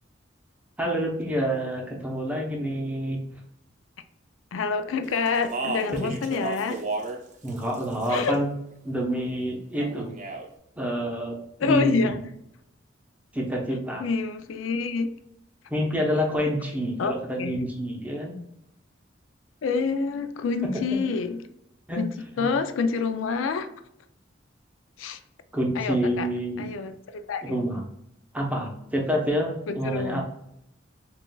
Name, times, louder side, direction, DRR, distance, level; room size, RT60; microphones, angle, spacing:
voice 1, 0.8-3.4 5.9-6.0 7.4-8.5 8.8-10.1 10.8-12.1 13.3-14.0 15.7-18.3 21.9-22.0 22.4-22.5 25.5-26.7 27.5-27.8 28.3-30.2, equal, 10° right, -1 dB, 0.8 m, -27 dB
voice 2, 4.5-6.9 8.1-8.4 11.6-12.2 14.0-15.1 17.0-17.1 17.4-17.7 19.6-21.4 22.0-23.7 25.0-25.2 25.7-26.3 26.6-27.6 29.7-30.2, left 4 dB, 90° left, 9 dB, 0.4 m, -27 dB
Speech, 5.3-7.2 7.5-8.4 9.8-10.5, right 3 dB, 40° right, 0.6 m, -33 dB
6.8 x 2.4 x 2.3 m, 0.80 s
head